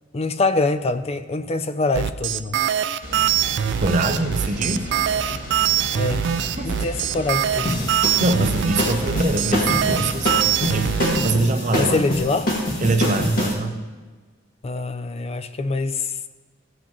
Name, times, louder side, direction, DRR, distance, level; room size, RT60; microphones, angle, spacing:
voice 1, 0.1-2.6 5.9-7.9 11.8-12.5 14.6-16.1, left 3 dB, 30° left, 11 dB, 0.4 m, -24 dB
sound 1, 1.9-11.3, right 10 dB, 60° right, 0.3 m, -23 dB
sound 2, 3.0-11.1, equal, 90° left, 2.9 m, -34 dB
voice 2, 3.8-4.9 6.6-6.9 8.2-12.0 12.8-13.8, right 2 dB, 40° right, 6 dB, 0.7 m, -24 dB
sound 3, 7.6-13.5, left 1 dB, 45° left, 1.9 m, -25 dB
15.0 x 7.5 x 3.0 m, 1.3 s
head